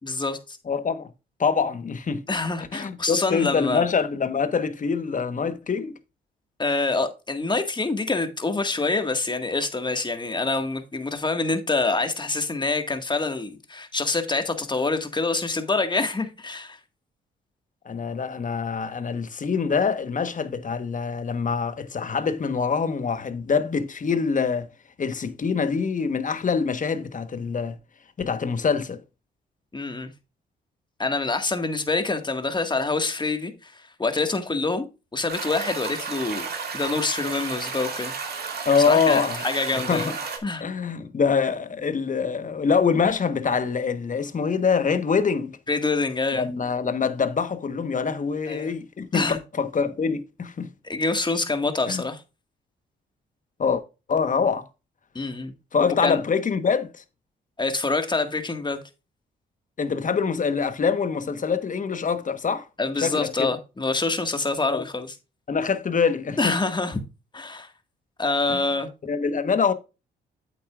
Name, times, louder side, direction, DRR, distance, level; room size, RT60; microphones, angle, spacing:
voice 1, 0.0-0.6 2.3-3.9 6.6-16.8 29.7-30.1 31.0-33.7 34.0-34.9 35.1-36.5 36.7-38.1 38.9-40.1 40.4-40.7 45.7-46.5 48.5-48.7 49.1-49.4 50.8-52.2 55.2-55.5 56.0-56.2 57.6-58.8 62.8-65.1 66.4-67.0 67.3-67.7 68.2-68.9, left 3 dB, 25° left, 1.8 m, -26 dB
voice 2, 0.7-1.1 1.4-2.2 2.7-5.9 17.8-24.7 25.0-27.7 28.2-29.0 38.6-39.4 39.7-40.2 40.6-45.5 46.3-50.7 51.9-52.0 53.6-53.8 54.1-54.6 55.7-57.0 59.8-62.7 63.0-63.5 64.7-64.8 65.5-66.6 68.5-68.6 69.1-69.7, left 5 dB, 45° left, 1.2 m, -24 dB
sound 1, 35.3-40.4, right 5 dB, 60° right, 2.3 m, -32 dB
8.4 x 8.3 x 2.5 m
supercardioid pair, 60°, 19 cm